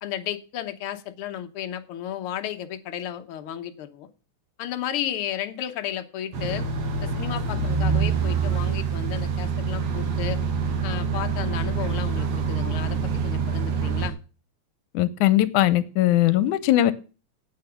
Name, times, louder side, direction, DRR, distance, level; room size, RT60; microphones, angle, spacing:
voice 1, 0.0-4.1 4.6-6.6 7.0-10.4 10.8-14.2, left 10 dB, 60° left, 7 dB, 1.5 m, -33 dB
sound 1, 6.3-14.1, right 5 dB, 60° right, 2.7 m, -26 dB
voice 2, 14.9-16.9, left 14 dB, 80° left, 15 dB, 2.2 m, -20 dB
8.9 x 8.8 x 6.9 m, 0.35 s
omnidirectional pair, 3.5 m